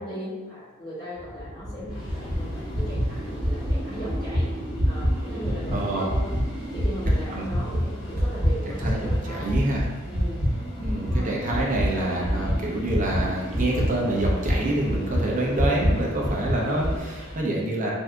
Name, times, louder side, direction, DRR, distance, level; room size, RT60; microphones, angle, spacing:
voice 1, 0.0-4.5 4.8-6.3 6.7-9.5 10.1-10.5 10.9-11.3, equal, 45° left, -15 dB, 1.4 m, -37 dB
sound 1, 1.2-9.2 9.5-17.0, equal, 15° right, 1.1 m, -27 dB
sound 2, 1.8-17.4, equal, 65° left, 0.8 m, -42 dB
voice 2, 5.7-6.0 7.3-7.6 8.7-9.8 10.8-17.9, right 1 dB, 40° right, -3 dB, 0.6 m, -27 dB
3.6 x 2.7 x 2.3 m, 1.3 s
head